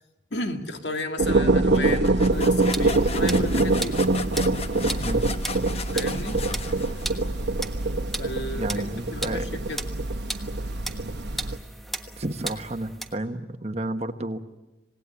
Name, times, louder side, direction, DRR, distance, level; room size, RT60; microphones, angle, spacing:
voice 1, 0.3-4.0 5.9-6.4 8.2-9.9, left 1 dB, 80° left, 5 dB, 2.3 m, -33 dB
sound 1, 1.2-11.6, right 2 dB, 75° right, 1.1 m, -24 dB
sound 2, 1.7-7.4, left 5 dB, 35° left, 0.9 m, -37 dB
sound 3, 2.3-13.2, right 1 dB, ahead, 1.3 m, -37 dB
voice 2, 5.0-5.3 8.5-9.5 12.2-14.4, right 1 dB, 35° right, 7 dB, 1.4 m, -31 dB
27.0 x 18.5 x 9.9 m, 1.1 s
head